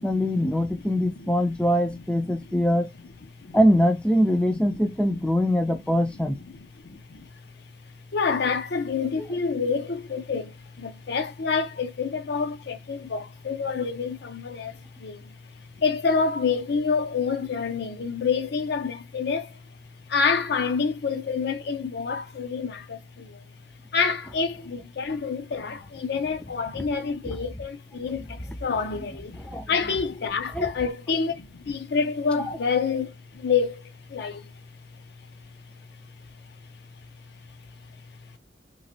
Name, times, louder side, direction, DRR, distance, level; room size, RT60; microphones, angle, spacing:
voice 1, 0.0-2.9 3.5-6.4 29.5-29.7 30.6-30.7, equal, 5° left, 0.4 m, -22 dB
voice 2, 1.2-2.7 3.4-3.6 4.5-4.7 5.1-5.2 6.1-7.3 8.1-19.6 20.1-23.4 23.9-34.5 35.2-35.3, left 5 dB, 60° left, 0.5 m, -28 dB
3.1 x 2.5 x 2.7 m
head